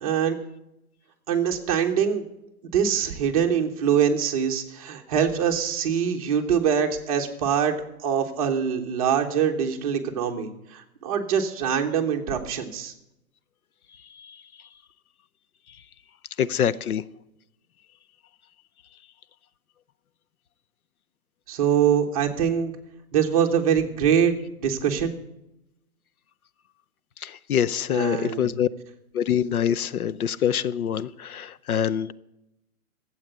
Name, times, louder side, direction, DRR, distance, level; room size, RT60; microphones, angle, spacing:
voice 1, 0.0-0.4 1.3-2.2 2.7-12.9 21.5-22.7 23.1-24.3 24.6-25.1 27.9-28.5, right 8 dB, 25° right, 1.1 m, -24 dB
voice 2, 16.4-17.0 27.2-28.7 29.1-32.1, left 9 dB, 70° left, 0.8 m, -25 dB
15.5 x 8.2 x 8.0 m
hypercardioid pair, 165°, 45 cm